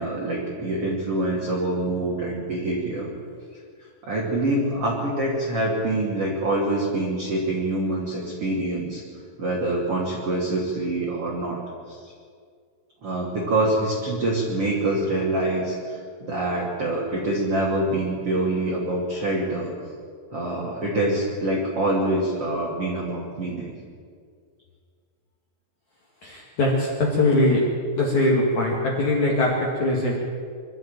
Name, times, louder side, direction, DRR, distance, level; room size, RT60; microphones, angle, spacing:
voice 1, 0.0-3.1 4.0-9.0 9.4-11.6 11.9-12.1 13.0-19.7 20.3-23.7, right 1 dB, 35° right, -4 dB, 2.9 m, -25 dB
voice 2, 26.2-27.6 28.0-30.1, left 2 dB, 45° left, -3 dB, 3.0 m, -21 dB
25.0 x 12.5 x 9.0 m, 2.1 s
omnidirectional pair, 5.8 m